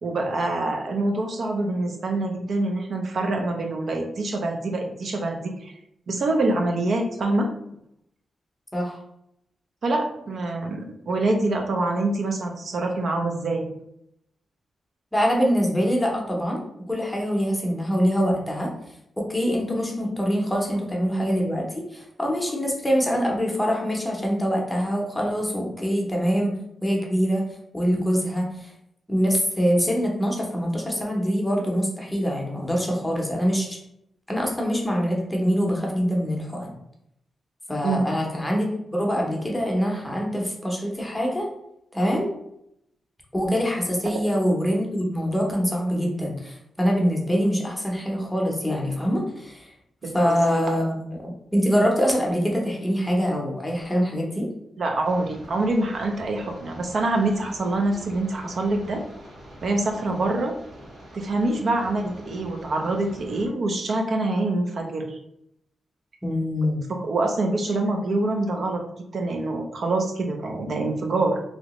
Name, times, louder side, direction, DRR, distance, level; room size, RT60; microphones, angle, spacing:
voice 1, 0.0-5.7 6.1-7.5 9.8-13.7 37.8-38.0 50.0-50.6 54.8-59.0 59.6-60.5 61.1-65.2 66.9-68.8 69.1-71.4, right 2 dB, 55° right, 2 dB, 0.4 m, -25 dB
voice 2, 15.1-18.7 19.2-26.6 26.8-27.5 27.7-28.7 29.1-33.8 34.3-36.7 37.7-38.7 38.9-41.5 41.9-42.3 43.3-49.7 50.1-54.5 66.2-66.8, equal, 10° left, -1 dB, 0.7 m, -24 dB
sound 1, 55.0-63.5, equal, 80° right, 1.5 m, -45 dB
3.1 x 2.8 x 3.0 m, 0.78 s
wide cardioid pair, 150°, 0 cm